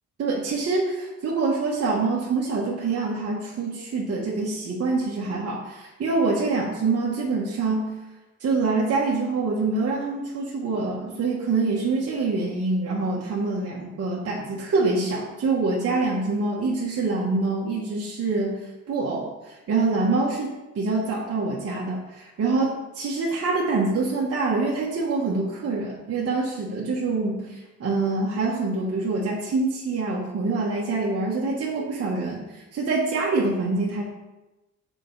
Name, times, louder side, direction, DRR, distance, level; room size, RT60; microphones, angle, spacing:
voice 1, 0.2-7.9 8.4-18.6 18.9-34.0, right 3 dB, 50° right, -4 dB, 1.3 m, -25 dB
6.5 x 5.1 x 4.0 m, 1.0 s
cardioid pair, 90°, 30 cm